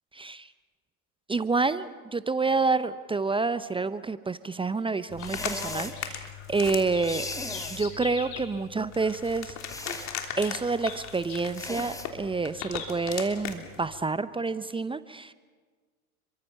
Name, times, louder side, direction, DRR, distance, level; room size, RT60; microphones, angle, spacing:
voice 1, 0.1-0.5 1.3-7.3 7.7-9.6 10.4-15.3, right 4 dB, 10° right, 14 dB, 0.8 m, -28 dB
sound 1, 5.1-14.0, left 8 dB, 40° left, 3.4 m, -39 dB
sound 2, 5.2-6.4 6.7-8.5 9.0-9.3 9.6-11.4 12.6-12.9, left 7 dB, 55° left, 4.8 m, -43 dB
sound 3, 5.2-6.0 7.0-7.9 9.6-10.1 11.5-12.1, left 2 dB, 5° left, 2.5 m, -37 dB
29.5 x 23.5 x 5.8 m, 1.5 s
figure-of-eight pair, 80°, 44 cm